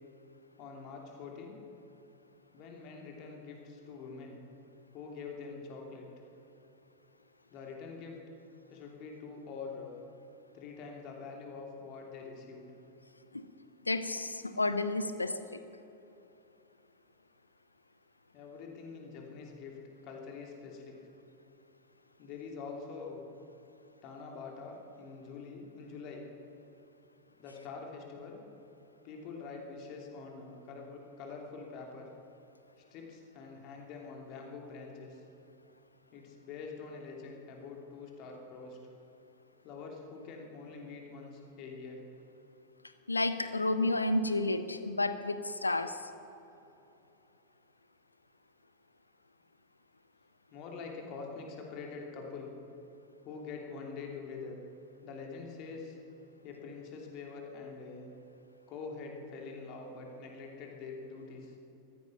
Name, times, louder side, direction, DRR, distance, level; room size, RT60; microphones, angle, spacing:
voice 1, 0.6-1.6 2.5-4.4 4.9-6.1 7.5-8.2 8.7-10.0 10.5-12.7 18.3-19.7 20.0-21.0 22.2-23.2 24.0-26.3 27.4-28.4 29.0-32.1 32.9-35.2 36.1-38.8 39.6-42.0 50.5-52.5 53.2-54.5 55.0-56.0 56.4-58.1 58.7-61.5, left 4 dB, 40° left, 1 dB, 2.9 m, -45 dB
voice 2, 13.9-15.6 43.1-46.0, left 2 dB, 80° left, 11 dB, 0.8 m, -31 dB
15.0 x 14.5 x 5.9 m, 2.9 s
figure-of-eight pair, 90°, 0 cm